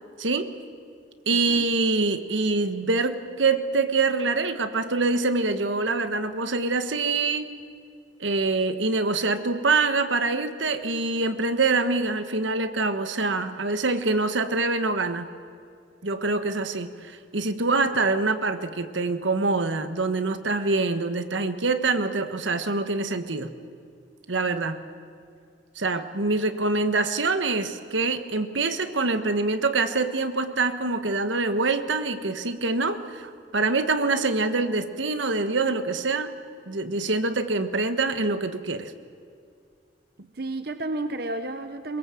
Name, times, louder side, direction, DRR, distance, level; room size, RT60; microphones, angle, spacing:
voice 1, 0.2-0.5 1.3-7.5 8.2-15.3 16.0-23.5 24.3-24.8 25.7-36.3 36.7-38.9, right 3 dB, 85° right, 9 dB, 1.4 m, -25 dB
voice 2, 40.2-42.0, right 2 dB, 55° right, 9 dB, 1.0 m, -32 dB
23.0 x 22.0 x 7.7 m, 2.4 s
head